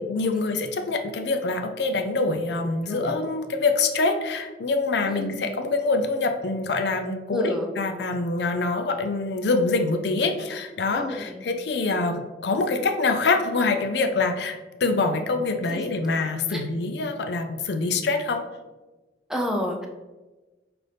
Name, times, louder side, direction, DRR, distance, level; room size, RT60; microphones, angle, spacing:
voice 1, 0.1-18.4, left 3 dB, 70° left, 5 dB, 0.5 m, -25 dB
voice 2, 2.9-3.2 5.1-5.4 7.3-7.7 10.9-11.5 15.7-15.8 16.5-16.6 19.3-19.9, left 1 dB, 5° right, 1 dB, 0.4 m, -29 dB
5.7 x 2.5 x 3.3 m, 1.2 s
head